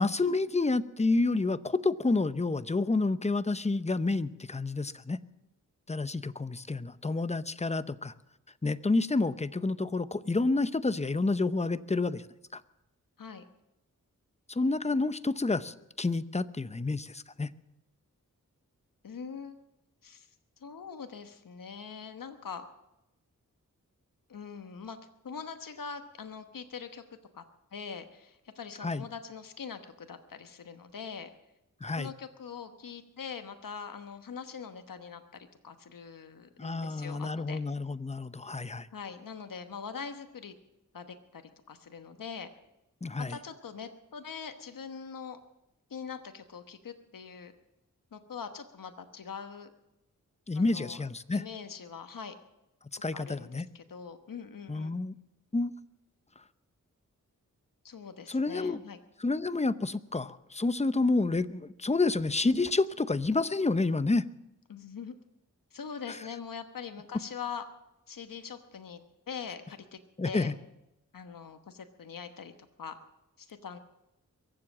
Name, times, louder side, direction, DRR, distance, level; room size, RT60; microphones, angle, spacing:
voice 1, 0.0-5.2 5.9-8.1 8.6-12.2 12.5-12.6 14.5-17.5 28.8-29.0 31.8-32.1 36.6-38.9 43.0-43.4 50.5-51.4 53.0-53.7 54.7-55.1 55.5-55.7 58.3-58.8 59.2-64.3 70.2-70.5, left 3 dB, 20° left, 14 dB, 0.7 m, -29 dB
voice 2, 19.0-19.6 20.0-20.3 20.6-22.6 24.3-25.0 25.2-27.0 27.3-27.4 27.7-31.3 31.9-37.6 38.9-40.5 40.9-41.4 41.7-42.5 43.2-45.4 45.9-47.5 48.1-49.7 50.5-52.3 53.1-55.0 57.8-59.0 64.7-65.1 65.7-67.6 68.1-69.0 69.3-70.0 70.2-70.5 71.1-73.0 73.4-73.8, left 6 dB, 75° left, 8 dB, 1.1 m, -43 dB
23.0 x 7.7 x 7.4 m, 0.90 s
cardioid pair, 45°, 33 cm